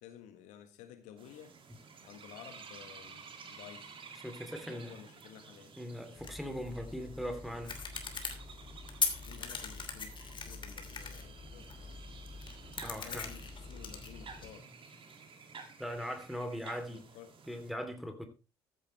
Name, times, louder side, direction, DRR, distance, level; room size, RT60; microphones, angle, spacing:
voice 1, 0.0-1.6 2.0-3.9 4.6-5.7 9.2-12.0 12.9-14.7 16.9-17.4, left 10 dB, 60° left, 1.5 m, -53 dB
sound 1, 1.2-17.7, right 5 dB, 40° right, 2.5 m, -53 dB
voice 2, 4.2-5.0 5.8-7.8 12.8-13.3 15.8-17.0 17.5-18.3, equal, ahead, 3.1 m, -40 dB
sound 2, 6.2-14.5, left 5 dB, 35° left, 2.8 m, -41 dB
14.5 x 11.0 x 3.3 m
figure-of-eight pair, 50°, 14 cm